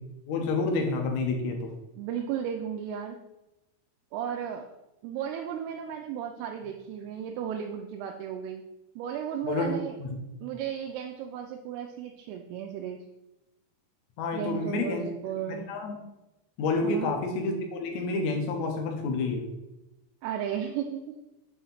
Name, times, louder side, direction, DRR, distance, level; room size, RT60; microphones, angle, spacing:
voice 1, 0.3-1.7 9.4-10.1 14.2-15.0 15.5-16.0 16.6-19.5, left 3 dB, 75° left, 2 dB, 1.7 m, -29 dB
voice 2, 2.0-3.2 4.1-4.7 5.0-8.6 9.0-10.0 10.4-13.0 14.3-15.7 16.8-17.1 20.2-21.1, right 9 dB, 90° right, 3 dB, 2.6 m, -34 dB
7.4 x 2.8 x 5.7 m, 0.97 s
omnidirectional pair, 4.5 m